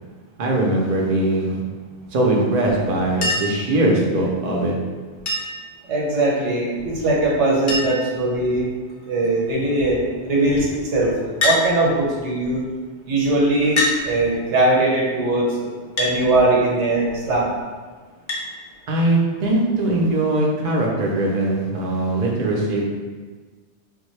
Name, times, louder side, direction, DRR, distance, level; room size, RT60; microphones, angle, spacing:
voice 1, 0.4-1.6 2.1-4.7 18.9-22.9, right 1 dB, 50° right, -2 dB, 0.5 m, -20 dB
Chink clink, 3.2-3.7 5.3-5.7 7.0-7.1 7.3-7.4 7.7-8.1 8.9-9.3 11.4-11.7 12.7-12.8 13.8-14.0 16.0-16.2 18.3-18.5 19.9-20.0, left 2 dB, 40° left, 0.4 m, -23 dB
voice 2, 5.9-8.7 9.1-12.6 13.1-17.5, right 2 dB, 85° right, -3 dB, 1.1 m, -20 dB
3.5 x 2.2 x 3.1 m, 1.5 s
omnidirectional pair, 1.2 m